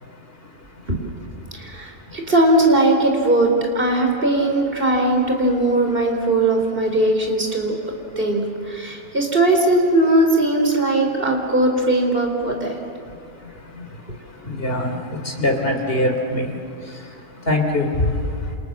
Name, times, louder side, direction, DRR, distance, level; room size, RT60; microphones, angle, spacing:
voice 1, 1.5-7.7 8.2-12.7, right 1 dB, 35° right, 3 dB, 4.3 m, -19 dB
voice 2, 14.5-16.5 17.5-17.9, left 1 dB, 40° left, 4 dB, 3.5 m, -22 dB
28.5 x 28.0 x 7.4 m, 2.6 s
omnidirectional pair, 1.6 m